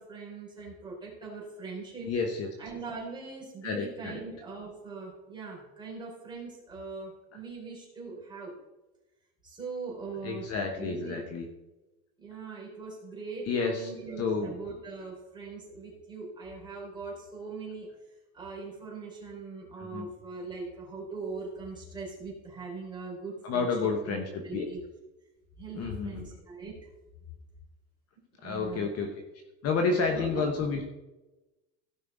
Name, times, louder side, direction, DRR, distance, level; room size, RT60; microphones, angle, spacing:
voice 1, 0.0-2.1 2.6-8.5 9.4-10.5 10.7-11.3 12.2-17.9 18.3-23.9 24.4-24.8 25.6-26.9 28.4-28.9 30.1-30.4, right 4 dB, 10° right, -4 dB, 4.0 m, -41 dB
voice 2, 2.1-2.5 3.6-4.2 7.3-7.4 10.2-11.5 13.5-13.9 14.2-14.5 19.8-20.1 23.4-24.7 25.7-26.3 28.4-29.1 29.6-30.8, left 4 dB, 40° left, 3 dB, 1.2 m, -30 dB
16.0 x 5.6 x 4.0 m, 1.1 s
cardioid pair, 155°, 38 cm